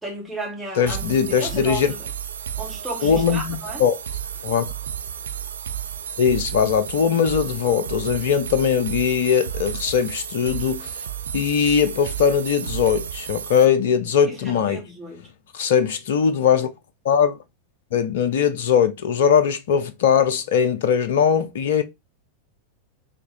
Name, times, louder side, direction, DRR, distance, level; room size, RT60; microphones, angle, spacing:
voice 1, 0.0-2.1 2.6-3.9 14.3-15.3, right 1 dB, 5° right, 2.1 m, -34 dB
voice 2, 0.8-1.9 3.0-4.0 4.4-4.7 6.2-11.0 11.3-14.8 15.5-16.7 17.0-17.4 17.9-21.8, left 7 dB, 55° left, 0.5 m, -20 dB
sound 1, 0.9-13.7, right 9 dB, 65° right, 0.3 m, -32 dB
4.2 x 3.3 x 2.6 m
figure-of-eight pair, 90°, 0 cm